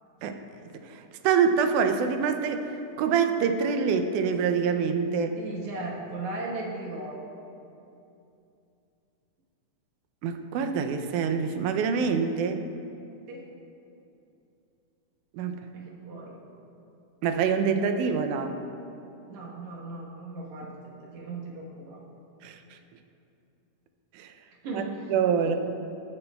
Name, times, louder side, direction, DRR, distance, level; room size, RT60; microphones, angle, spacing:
voice 1, 0.7-5.4 10.2-12.6 15.3-15.7 17.2-18.6 22.4-22.6 24.1-24.3 24.7-24.8 25.1-25.6, right 6 dB, 85° right, 7 dB, 2.1 m, -26 dB
voice 2, 5.4-7.4 13.3-13.5 15.7-16.4 19.3-22.0 24.6-25.1 25.4-25.6, right 2 dB, 70° right, -3 dB, 2.5 m, -37 dB
14.0 x 8.6 x 2.3 m, 2.7 s
omnidirectional pair, 3.5 m